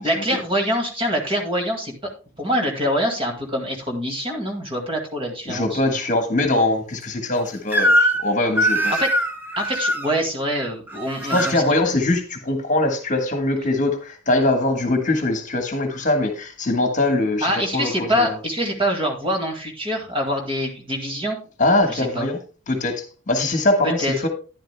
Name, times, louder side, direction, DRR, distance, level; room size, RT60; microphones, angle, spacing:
voice 1, 0.0-1.9 2.4-5.8 8.9-9.1 9.6-11.6 17.4-21.4 21.9-22.3 24.0-24.1, equal, 25° right, 2 dB, 2.0 m, -24 dB
voice 2, 5.5-9.0 11.3-18.4 21.6-22.4 22.7-24.3, left 2 dB, 40° left, 5 dB, 1.4 m, -22 dB
Crying sobbing / Screech, 7.7-8.3 8.6-10.1 10.9-11.6, equal, 10° right, 1.0 m, -21 dB
11.5 x 10.5 x 2.2 m, 0.35 s
head